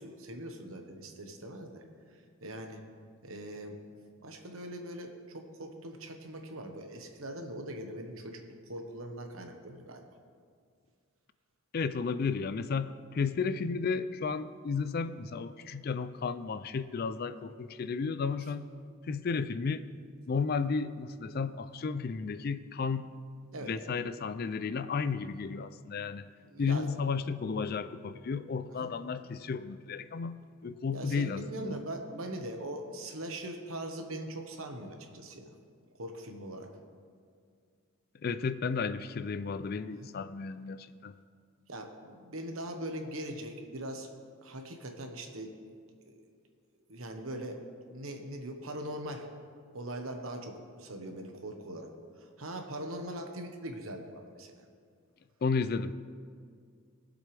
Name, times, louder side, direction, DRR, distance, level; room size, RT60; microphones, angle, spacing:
voice 1, 0.0-1.8 2.1-2.8 3.2-3.8 4.2-10.0 23.5-23.7 26.5-26.9 28.7-28.9 30.9-35.5 36.0-36.7 40.0-40.1 41.7-44.1 44.4-45.5 46.0-46.2 46.9-49.3 49.7-51.9 52.2-54.6, right 1 dB, 75° right, 4 dB, 1.3 m, -41 dB
voice 2, 11.7-18.7 19.1-19.9 20.3-23.1 23.7-26.3 26.6-31.8 38.2-41.1 55.4-55.9, left 5 dB, 45° left, 13 dB, 0.4 m, -33 dB
20.5 x 7.6 x 3.4 m, 2.1 s
head